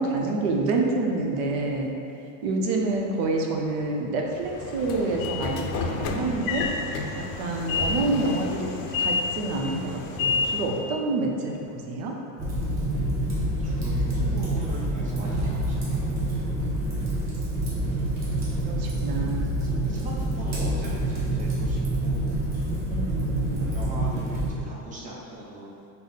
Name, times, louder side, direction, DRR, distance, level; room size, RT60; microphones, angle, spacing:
voice 1, 0.0-1.9 2.4-6.7 7.2-8.7 9.0-12.1 17.0-17.2 17.6-17.9 18.6-19.5 22.9-23.7, right 2 dB, 85° right, 1 dB, 0.7 m, -28 dB
Train / Sliding door, 4.4-10.9, left 4 dB, 55° left, 0.5 m, -29 dB
Fire, 12.4-24.5, right 1 dB, 40° right, 1.4 m, -27 dB
voice 2, 13.3-16.3 18.6-22.2 23.5-25.7, right 1 dB, 20° right, -5 dB, 0.6 m, -41 dB
5.5 x 2.1 x 4.0 m, 2.6 s
cardioid pair, 140°, 43 cm